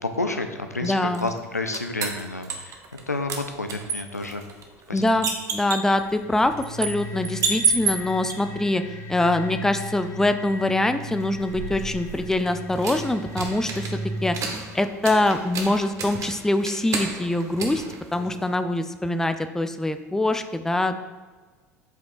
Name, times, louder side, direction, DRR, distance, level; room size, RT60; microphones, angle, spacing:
voice 1, 0.0-2.8 3.1-4.4 4.9-5.0, left 2 dB, 90° left, 6 dB, 0.5 m, -30 dB
voice 2, 0.8-1.3 4.9-8.8 9.1-14.4 14.7-17.8 18.1-21.0, left 2 dB, 5° left, 9 dB, 0.4 m, -24 dB
sound 1, 1.1-3.0 3.3-8.3 11.1-18.6, right 5 dB, 40° right, 1.0 m, -31 dB
sound 2, 5.6-14.9, equal, 45° left, 1.7 m, -37 dB
7.7 x 5.1 x 2.4 m, 1.4 s
figure-of-eight pair, 70°, 8 cm